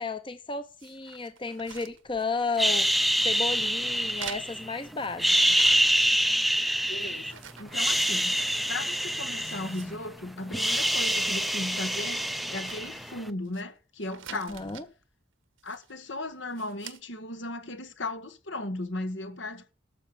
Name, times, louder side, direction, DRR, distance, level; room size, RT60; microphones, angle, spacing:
voice 1, 0.0-2.9 3.2-5.6 14.3-14.8, left 4 dB, 25° left, 0.9 m, -33 dB
sound 1, 0.8-2.7 3.0-3.5 4.0-6.2 6.5-8.4 8.8-8.9 9.3-10.5 10.8-11.6 11.9-12.0 12.4-13.6 14.0-14.9 15.6-16.0 16.5-17.0, right 9 dB, 90° right, 1.3 m, -47 dB
sound 2, 2.6-4.7 5.1-7.3 7.7-10.1 10.3-13.2, equal, ahead, 0.5 m, -26 dB
voice 2, 6.9-8.3 8.7-12.2 12.5-14.8 15.6-19.6, left 2 dB, 70° left, 1.7 m, -36 dB
12.5 x 6.6 x 7.0 m
head